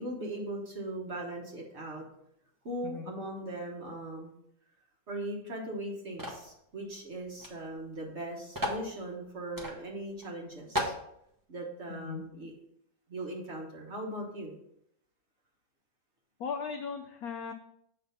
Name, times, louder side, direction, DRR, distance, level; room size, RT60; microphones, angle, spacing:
voice 1, 0.0-2.0 2.6-4.3 5.1-10.9 11.5-12.5 13.1-14.6, right 1 dB, 40° right, 0 dB, 1.2 m, -39 dB
sound 1, 6.2-6.5 7.4-7.5 7.8-7.9 8.5-8.9 9.6-9.8 10.2-10.3 10.8-11.0, equal, 20° right, 0.6 m, -33 dB
voice 2, 11.9-12.2 16.4-17.5, left 6 dB, 75° left, 5 dB, 0.8 m, -37 dB
7.7 x 3.4 x 5.5 m, 0.74 s
omnidirectional pair, 2.1 m